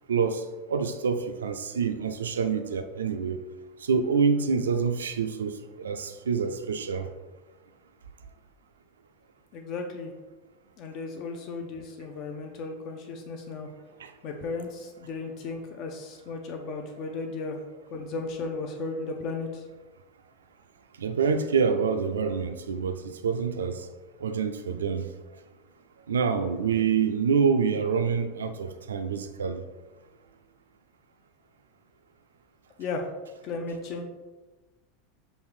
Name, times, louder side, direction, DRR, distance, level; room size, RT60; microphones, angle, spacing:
voice 1, 0.1-3.4 3.8-7.1 14.0-14.1 21.0-23.9 24.2-25.1 26.1-29.6, right 6 dB, 70° right, 8 dB, 0.3 m, -27 dB
voice 2, 9.5-10.1 10.8-13.7 14.2-17.6 17.9-19.6 32.8-33.0 33.4-34.0, left 3 dB, 45° left, 4 dB, 0.5 m, -35 dB
6.4 x 2.5 x 3.2 m, 1.2 s
figure-of-eight pair, 80°, 0 cm